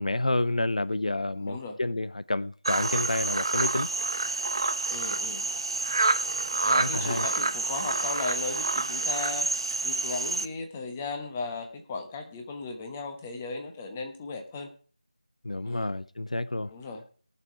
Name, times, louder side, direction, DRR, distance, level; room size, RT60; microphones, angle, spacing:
voice 1, 0.0-3.9 6.8-7.2 15.4-16.7, left 2 dB, 70° left, 0.5 m, -29 dB
voice 2, 1.4-1.8 4.9-5.5 6.6-9.5 9.8-14.7 15.6-15.9 16.7-17.0, left 4 dB, 15° left, 1.2 m, -36 dB
sound 1, 2.7-10.5, right 3 dB, 40° right, 0.7 m, -28 dB
18.5 x 6.7 x 4.7 m
figure-of-eight pair, 165°, 4 cm